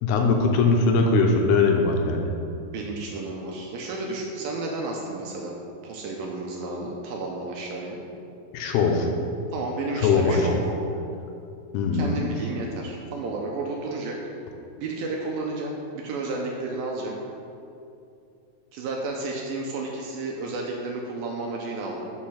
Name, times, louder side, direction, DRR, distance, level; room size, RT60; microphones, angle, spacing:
voice 1, 0.0-2.3 8.5-9.1 10.0-10.4 11.7-12.1, left 4 dB, 85° left, 2 dB, 2.6 m, -21 dB
voice 2, 2.7-5.6 5.8-8.0 9.5-10.8 11.9-14.2 14.8-17.2 18.7-22.1, right 3 dB, 80° right, -1 dB, 2.3 m, -32 dB
6.6 x 6.3 x 5.7 m, 2.6 s
omnidirectional pair, 4.7 m